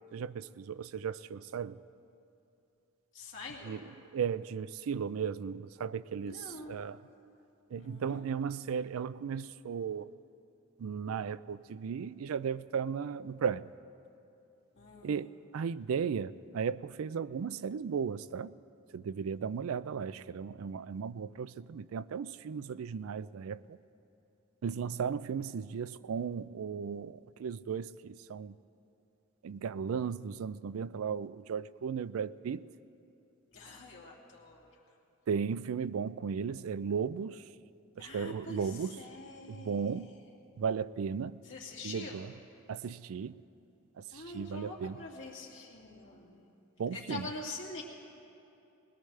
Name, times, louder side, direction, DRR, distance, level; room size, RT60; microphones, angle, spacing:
voice 1, 0.1-1.8 3.7-3.8 4.1-7.0 7.7-10.1 10.8-13.7 15.0-18.5 18.9-23.8 24.6-28.6 29.4-32.7 35.3-37.5 38.0-39.0 39.5-40.1 40.6-41.4 41.8-42.3 42.7-43.4 44.0-45.0 46.8-47.3, right 6 dB, 75° right, 0.4 m, -36 dB
voice 2, 3.1-3.8 6.2-6.8 7.7-8.2 14.7-15.2 33.5-35.0 38.0-40.2 41.4-42.2 44.1-46.4 46.9-47.8, left 3 dB, 60° left, 2.8 m, -45 dB
21.0 x 21.0 x 3.3 m
head